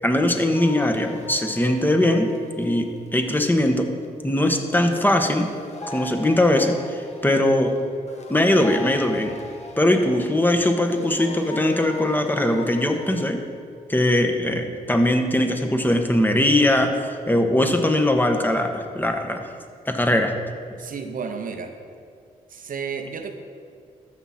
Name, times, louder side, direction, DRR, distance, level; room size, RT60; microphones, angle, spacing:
voice 1, 0.0-2.3 2.6-3.9 4.2-5.5 5.9-7.8 8.3-9.4 9.8-13.4 13.9-19.4 19.9-20.3, left 1 dB, 10° left, 5 dB, 1.3 m, -21 dB
sound 1, 0.5-4.0 5.2-13.3, left 2 dB, 45° left, 1.3 m, -39 dB
voice 2, 20.8-21.7 22.5-23.3, right 6 dB, 60° right, 6 dB, 1.0 m, -32 dB
13.0 x 6.1 x 4.3 m, 2.2 s
supercardioid pair, 45°, 16 cm